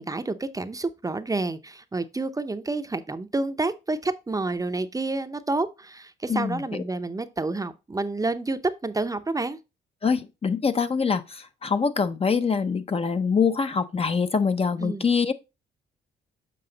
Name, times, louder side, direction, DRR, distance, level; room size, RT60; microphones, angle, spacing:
voice 1, 0.0-9.6 14.8-15.1, right 3 dB, 15° right, 0.6 m, -29 dB
voice 2, 6.3-6.6 10.0-15.3, left 5 dB, 30° left, 0.6 m, -24 dB
7.7 x 4.7 x 3.9 m
cardioid pair, 90°, 20 cm